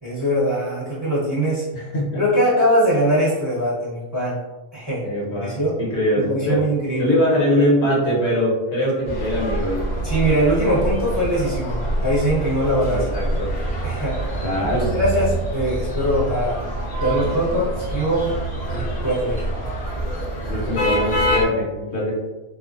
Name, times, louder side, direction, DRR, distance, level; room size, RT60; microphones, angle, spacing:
voice 1, 0.0-1.6 2.2-4.4 4.7-5.0 5.3-5.8 6.2-7.2 10.0-13.1 13.8-14.2 14.7-16.6 17.0-18.3 18.7-19.4, equal, 25° right, -9 dB, 0.8 m, -22 dB
voice 2, 1.7-2.2 5.0-6.7 7.0-9.9 12.9-13.5 14.4-14.9 20.5-22.1, left 1 dB, 60° left, -5 dB, 1.0 m, -22 dB
sound 1, 9.0-21.5, right 1 dB, 80° left, 1.5 m, -26 dB
3.4 x 2.0 x 2.5 m, 1.1 s
omnidirectional pair, 1.3 m